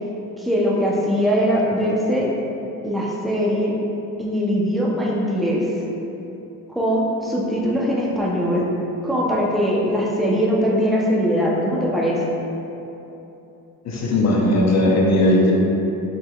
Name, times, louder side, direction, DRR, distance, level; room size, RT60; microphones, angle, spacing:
voice 1, 0.4-2.3 2.8-3.8 4.2-5.7 6.7-8.7 9.0-12.2, equal, ahead, -4 dB, 0.6 m, -21 dB
voice 2, 13.8-15.5, left 1 dB, 50° left, -2 dB, 0.8 m, -17 dB
5.5 x 3.9 x 2.2 m, 3.0 s
cardioid pair, 110°, 36 cm